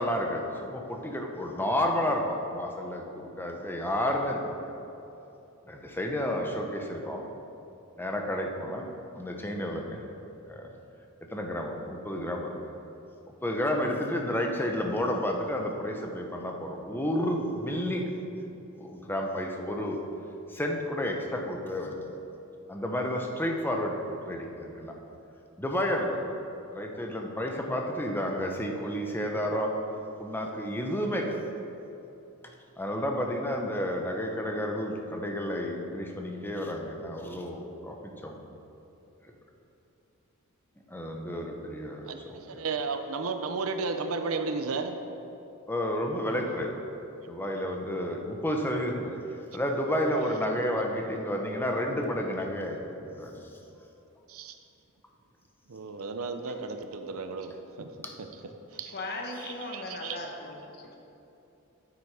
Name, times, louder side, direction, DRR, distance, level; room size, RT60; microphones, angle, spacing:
voice 1, 0.0-4.7 5.7-7.3 8.0-8.9 9.1-10.0 10.5-10.7 11.3-12.5 13.4-18.5 18.8-20.0 20.5-22.0 22.7-24.0 24.3-24.9 25.6-26.3 26.7-29.7 30.2-31.4 32.8-38.4 40.9-42.4 45.7-46.7 47.3-53.5 58.0-58.1, equal, 10° left, 1 dB, 0.9 m, -31 dB
voice 2, 42.1-45.0 54.3-54.6 55.7-57.9 58.2-58.3 58.7-58.9 59.7-60.2, right 4 dB, 75° right, 7 dB, 0.7 m, -33 dB
voice 3, 58.7-61.0, left 2 dB, 50° left, 1 dB, 1.2 m, -38 dB
9.5 x 8.1 x 4.9 m, 2.9 s
head